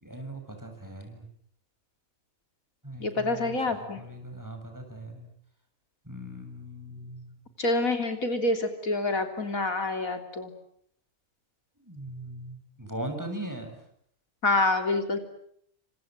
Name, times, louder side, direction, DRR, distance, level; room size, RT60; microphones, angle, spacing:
voice 1, 0.0-1.2 2.8-5.3 6.1-7.3 11.9-13.7, right 1 dB, 15° right, 5 dB, 6.8 m, -39 dB
voice 2, 3.0-4.0 7.6-10.5 14.4-15.2, left 2 dB, 90° left, 6 dB, 3.8 m, -27 dB
29.5 x 26.5 x 7.6 m, 0.67 s
omnidirectional pair, 1.4 m